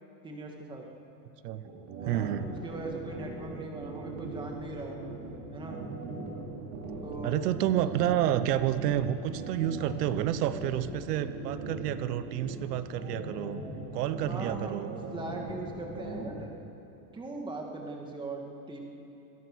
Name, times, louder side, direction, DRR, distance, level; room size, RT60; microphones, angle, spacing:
voice 1, 0.2-0.9 2.0-5.0 5.5-5.8 7.0-7.4 14.2-16.5 17.1-18.8, right 2 dB, 10° right, 1 dB, 2.3 m, -40 dB
sound 1, 1.6-16.4, right 3 dB, 50° right, 6.2 m, -39 dB
voice 2, 2.0-2.4 7.2-13.6 13.9-14.9, right 11 dB, 85° right, 12 dB, 1.2 m, -29 dB
27.5 x 21.5 x 6.4 m, 2.8 s
supercardioid pair, 170°, 46 cm